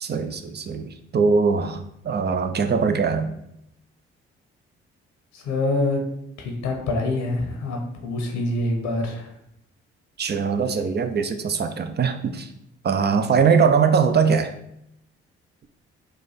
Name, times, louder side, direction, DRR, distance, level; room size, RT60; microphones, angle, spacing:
voice 1, 0.0-1.8 2.0-3.3 10.2-12.5 12.8-14.5, right 5 dB, 35° right, 8 dB, 0.6 m, -21 dB
voice 2, 5.3-6.0 6.4-9.3, left 2 dB, 70° left, 2 dB, 1.0 m, -25 dB
4.2 x 2.6 x 4.0 m, 0.78 s
hypercardioid pair, 45°, 31 cm